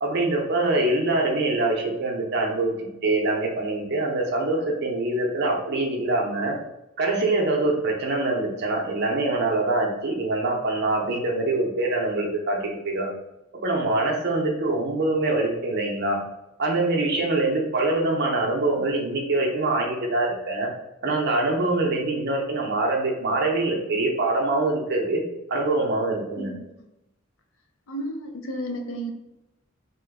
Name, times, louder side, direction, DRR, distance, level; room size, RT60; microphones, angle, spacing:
voice 1, 0.0-2.7 3.0-6.5 7.0-13.1 13.6-16.2 16.6-20.7 21.0-25.2 25.5-26.5, right 2 dB, 55° right, 0 dB, 0.6 m, -24 dB
voice 2, 27.9-29.1, right 1 dB, 80° left, 4 dB, 0.5 m, -32 dB
2.9 x 2.2 x 3.4 m, 0.93 s
head